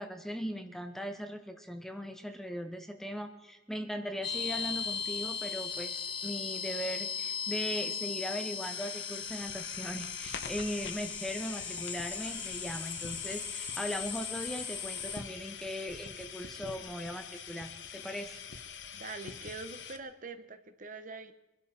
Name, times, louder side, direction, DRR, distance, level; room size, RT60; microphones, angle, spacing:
voice 1, 0.0-18.4, equal, ahead, 6 dB, 1.0 m, -39 dB
sound 1, 4.2-15.2, left 6 dB, 25° left, 1.3 m, -38 dB
sound 2, 8.6-20.0, left 6 dB, 75° left, 1.4 m, -45 dB
voice 2, 18.9-21.3, right 3 dB, 45° right, 9 dB, 1.2 m, -44 dB
24.5 x 12.0 x 4.4 m, 1.0 s
head